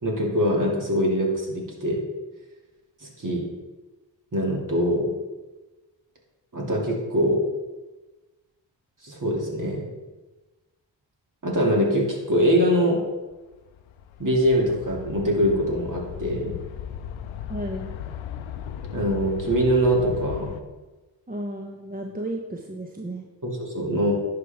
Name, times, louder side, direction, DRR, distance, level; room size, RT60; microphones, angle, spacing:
voice 1, 0.0-2.0 3.0-3.5 4.3-5.1 6.5-7.4 9.0-9.8 11.4-13.0 14.2-16.6 18.9-20.5 23.4-24.1, equal, 45° right, -2 dB, 2.5 m, -23 dB
sound 1, 13.3-20.6, left 9 dB, 90° left, 0.6 m, -37 dB
voice 2, 17.5-17.9 21.3-23.3, right 1 dB, 20° right, 1 dB, 0.9 m, -33 dB
10.5 x 5.0 x 3.5 m, 1.2 s
supercardioid pair, 45°, 45 cm